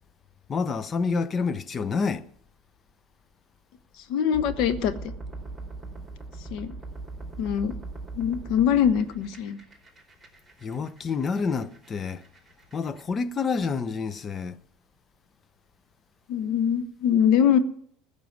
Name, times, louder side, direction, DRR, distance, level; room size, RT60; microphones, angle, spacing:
voice 1, 0.5-2.3 10.6-12.2 12.7-14.6, left 5 dB, 30° left, 0.8 m, -28 dB
voice 2, 4.1-5.1 6.5-6.7 7.4-7.7 8.1-9.6 16.3-17.6, left 8 dB, 65° left, 1.2 m, -23 dB
sound 1, 4.3-13.1, right 3 dB, 5° right, 4.6 m, -41 dB
15.0 x 6.7 x 9.5 m
supercardioid pair, 100°, 0 cm